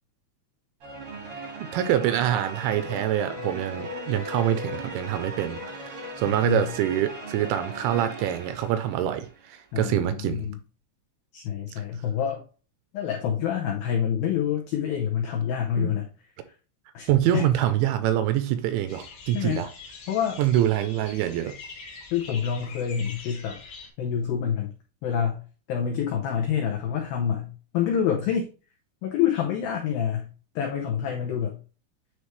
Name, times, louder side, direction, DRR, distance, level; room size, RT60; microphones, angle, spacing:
sound 1, 0.8-9.4, equal, 60° right, 1.4 m, -38 dB
voice 1, 1.6-10.5 15.8-15.9 17.1-19.7 20.4-21.6, right 11 dB, 85° right, 2.8 m, -25 dB
voice 2, 6.3-6.7 9.7-10.6 11.3-12.4 12.9-16.1 16.9-17.5 19.3-19.6 20.1-20.4 22.1-23.6 24.0-24.7 25.0-25.4 25.7-28.5 29.0-30.3 30.6-31.6, left 8 dB, 80° left, 2.1 m, -27 dB
sound 2, 18.9-23.9, left 4 dB, 50° left, 1.9 m, -44 dB
9.7 x 3.3 x 3.2 m
omnidirectional pair, 5.6 m